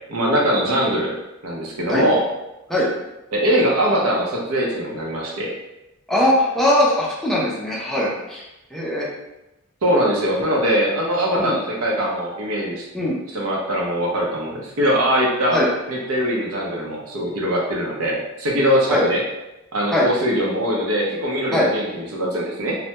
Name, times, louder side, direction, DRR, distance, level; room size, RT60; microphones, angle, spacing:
voice 1, 0.1-1.2 1.4-2.2 3.3-5.5 9.8-12.9 13.3-15.6 15.9-19.2 19.7-22.8, equal, 85° right, -2 dB, 0.6 m, -21 dB
voice 2, 6.1-8.4 8.7-9.1 11.4-11.6 12.9-13.2 15.5-15.7 18.9-19.1 19.9-20.1 21.5-21.7, left 1 dB, ahead, -6 dB, 0.4 m, -20 dB
2.1 x 2.1 x 2.8 m, 0.95 s
head